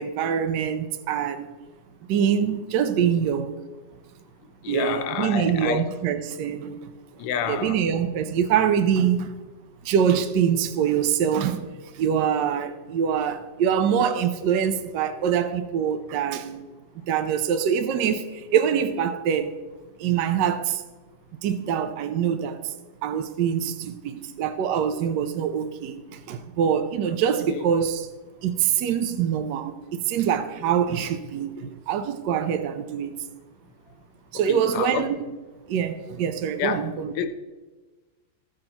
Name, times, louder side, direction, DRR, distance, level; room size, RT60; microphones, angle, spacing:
voice 1, 0.0-1.5 2.1-3.6 4.7-6.9 7.5-9.3 9.8-16.6 17.1-19.6 20.0-20.8 21.4-22.7 23.0-28.1 28.4-33.1 34.3-35.2 35.7-37.3, right 8 dB, 75° right, 1.2 m, -24 dB
voice 2, 4.6-5.9 7.2-7.8 27.5-27.6 34.5-35.0 36.6-36.8 37.2-37.3, left 8 dB, 75° left, 1.4 m, -28 dB
15.5 x 6.3 x 2.9 m
omnidirectional pair, 2.0 m